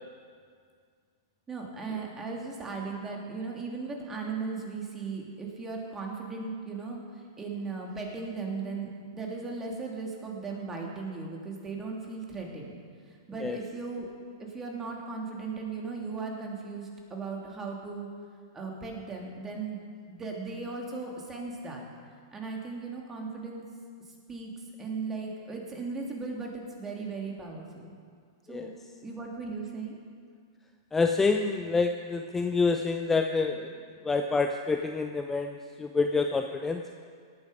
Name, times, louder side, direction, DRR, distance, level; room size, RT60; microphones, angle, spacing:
voice 1, 1.5-7.0 7.4-12.8 13.3-14.1 14.4-18.1 18.5-19.8 20.1-21.8 22.3-23.7 24.3-24.5 24.8-28.0 28.5-28.7 29.0-30.0, right 4 dB, 15° right, -1 dB, 2.8 m, -37 dB
voice 2, 30.9-33.7 34.0-36.8, left 4 dB, 10° left, 5 dB, 0.6 m, -27 dB
18.0 x 9.3 x 5.2 m, 2.1 s
hypercardioid pair, 110°, 2 cm